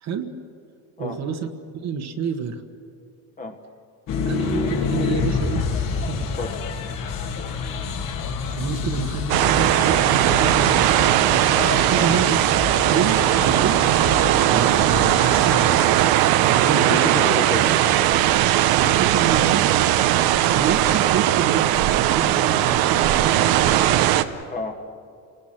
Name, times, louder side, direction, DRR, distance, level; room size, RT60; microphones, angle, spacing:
voice 1, 0.0-0.3 1.0-1.5 1.7-2.6 4.2-5.7 6.0-6.3 8.5-11.1 11.7-12.4 12.8-15.9 16.4-17.1 18.7-19.7 20.5-24.1, right 6 dB, 45° right, 6 dB, 1.5 m, -28 dB
sound 1, 4.1-15.7, left 5 dB, 60° left, 2.8 m, -28 dB
sound 2, 9.3-24.2, right 13 dB, 70° right, 1.0 m, -18 dB
voice 2, 16.6-18.0 24.5-24.8, left 3 dB, 20° left, 5 dB, 1.5 m, -30 dB
30.0 x 20.0 x 6.0 m, 2.4 s
cardioid pair, 150°, 37 cm